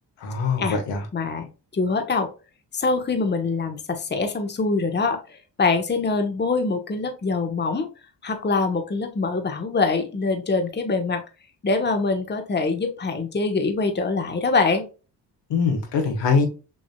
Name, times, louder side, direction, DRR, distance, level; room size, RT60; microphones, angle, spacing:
voice 1, 0.2-1.1 15.5-16.5, left 5 dB, 80° left, 4 dB, 1.4 m, -22 dB
voice 2, 1.1-2.3 2.7-7.9 8.2-11.2 11.6-14.9, left 3 dB, 25° left, 6 dB, 1.0 m, -24 dB
6.2 x 2.6 x 2.2 m, 0.32 s
cardioid pair, 75°, 43 cm